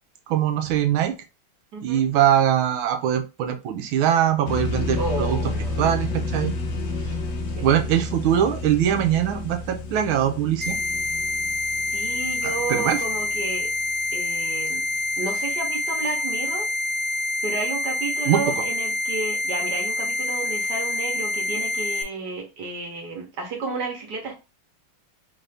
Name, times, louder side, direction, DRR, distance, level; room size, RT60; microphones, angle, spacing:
voice 1, 0.3-1.1 1.8-5.4 5.8-6.5 7.6-10.8 12.4-13.0 18.3-18.4, right 10 dB, 80° right, 6 dB, 1.5 m, -22 dB
voice 2, 1.7-2.1 5.0-5.8 7.6-7.8 11.9-13.7 14.1-14.8 15.2-16.7 17.4-24.3, right 3 dB, 55° right, 1 dB, 1.5 m, -32 dB
sound 1, 4.4-13.9, left 3 dB, 60° left, 1.4 m, -31 dB
sound 2, 10.6-22.0, left 2 dB, 80° left, 0.3 m, -26 dB
4.4 x 2.6 x 3.3 m, 0.29 s
omnidirectional pair, 2.3 m